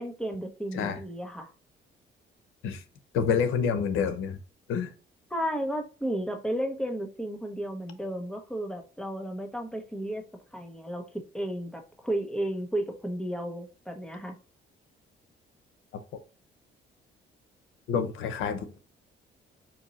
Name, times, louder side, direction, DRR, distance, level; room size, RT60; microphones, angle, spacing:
voice 1, 0.0-1.5 5.3-10.2 10.5-14.3, right 1 dB, 5° left, 1.1 m, -33 dB
voice 2, 3.1-4.4 4.7-4.9 17.9-18.8, left 6 dB, 90° left, 0.8 m, -27 dB
4.4 x 2.7 x 4.0 m
cardioid pair, 90°, 20 cm